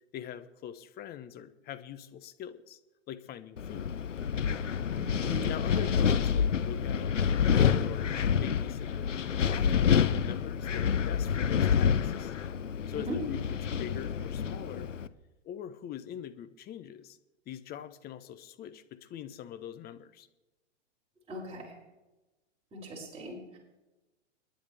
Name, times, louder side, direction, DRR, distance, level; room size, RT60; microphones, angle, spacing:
voice 1, 0.1-2.8 3.1-3.9 5.4-9.1 9.5-12.3 12.9-13.4 13.7-14.9 15.4-17.2 17.5-20.3, left 10 dB, 25° left, 12 dB, 1.0 m, -43 dB
Wind, 3.6-15.1, left 7 dB, 90° left, 0.8 m, -28 dB
voice 2, 4.9-5.8 12.9-13.2 21.3-21.8 22.7-23.6, right 1 dB, 15° right, -5 dB, 6.5 m, -40 dB
29.5 x 10.5 x 3.5 m, 1.1 s
hypercardioid pair, 110°, 36 cm